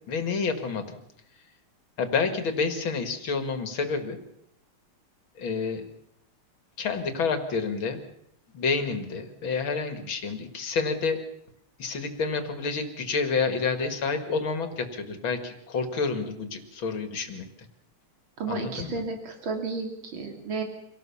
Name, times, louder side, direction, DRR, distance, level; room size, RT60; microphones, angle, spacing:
voice 1, 0.1-1.0 2.0-4.2 5.4-5.8 6.8-8.0 8.5-11.2 11.8-17.5 18.5-19.0, left 4 dB, 70° left, 8 dB, 2.9 m, -29 dB
voice 2, 18.4-20.6, right 4 dB, 70° right, 4 dB, 3.6 m, -32 dB
25.5 x 17.5 x 7.2 m, 0.77 s
omnidirectional pair, 2.3 m